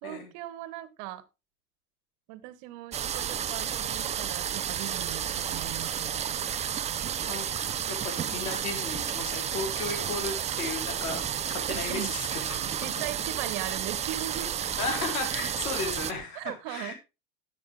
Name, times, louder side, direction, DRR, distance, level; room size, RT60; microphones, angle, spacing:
voice 1, 0.0-1.2 2.3-6.5 11.7-12.1 12.8-14.9 16.3-16.9, right 14 dB, 55° right, 15 dB, 1.4 m, -39 dB
sound 1, 2.9-16.1, right 9 dB, 15° right, 0.4 m, -31 dB
voice 2, 7.3-12.9 14.8-16.9, left 3 dB, 75° left, 4 dB, 4.0 m, -35 dB
11.5 x 7.1 x 3.6 m, 0.27 s
hypercardioid pair, 90°, 44 cm